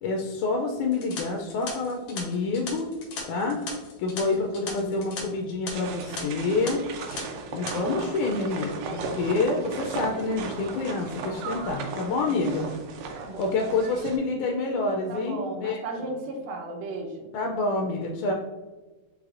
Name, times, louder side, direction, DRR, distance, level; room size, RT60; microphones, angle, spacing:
voice 1, 0.0-2.9 3.3-3.6 4.0-6.8 7.5-12.7 13.4-16.1 17.3-18.3, left 3 dB, 90° left, 2 dB, 2.0 m, -27 dB
sound 1, 0.9-5.2 5.5-5.7 6.2-6.3 6.7-7.2 7.5-7.7, left 4 dB, 65° left, 1.2 m, -37 dB
sound 2, 5.7-14.2, right 4 dB, 85° right, 2.0 m, -36 dB
voice 2, 8.8-9.2 12.2-12.4 13.1-13.7 15.1-17.3, right 2 dB, 70° right, 1 dB, 1.8 m, -36 dB
4.8 x 4.5 x 2.4 m, 1.3 s
omnidirectional pair, 3.4 m